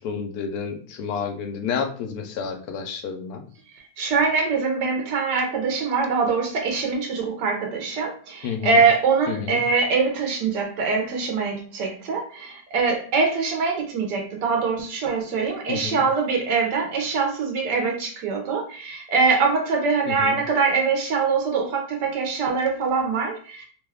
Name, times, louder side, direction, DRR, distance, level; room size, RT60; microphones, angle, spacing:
voice 1, 0.0-3.4 8.4-8.8 9.3-9.6 15.7-16.0 20.1-20.4, left 6 dB, 75° left, 5 dB, 1.0 m, -30 dB
voice 2, 4.0-23.6, right 4 dB, 85° right, 1 dB, 1.3 m, -23 dB
3.1 x 2.2 x 3.3 m, 0.42 s
omnidirectional pair, 1.8 m